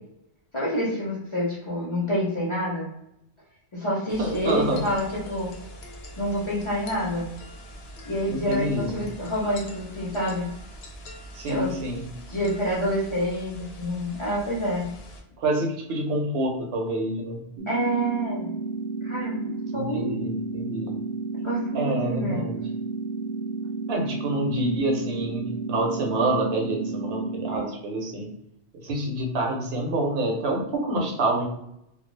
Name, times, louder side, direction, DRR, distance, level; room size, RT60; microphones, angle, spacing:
voice 1, 0.5-2.9 3.7-5.5 6.2-7.3 8.0-10.5 11.4-11.7 12.3-14.9 17.7-18.5 19.0-20.3 21.4-22.4, equal, 35° left, -6 dB, 0.6 m, -27 dB
sound 1, 4.1-15.2, equal, 70° left, 0.8 m, -43 dB
voice 2, 4.2-4.8 8.3-8.9 11.3-12.0 15.4-17.4 19.7-21.0 21.7-22.6 23.9-28.3 28.8-31.5, right 1 dB, 70° right, 1 dB, 0.8 m, -27 dB
sound 2, 17.6-27.6, right 3 dB, 45° right, 0.5 m, -32 dB
2.3 x 2.2 x 3.1 m, 0.80 s
omnidirectional pair, 1.1 m